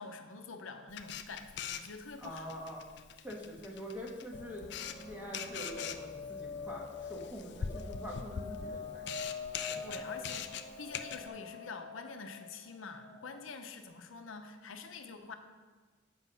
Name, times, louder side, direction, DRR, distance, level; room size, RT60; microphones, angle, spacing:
voice 1, 0.0-2.5 9.7-15.3, left 4 dB, 85° left, 6 dB, 0.7 m, -46 dB
Camera, 0.9-11.3, left 7 dB, 55° left, 0.4 m, -43 dB
voice 2, 2.2-2.9 3.2-9.1 9.9-10.1, equal, 10° right, -3 dB, 1.3 m, -45 dB
sound 1, 4.3-13.6, left 4 dB, 30° left, 1.0 m, -45 dB
8.3 x 5.4 x 5.6 m, 1.4 s
head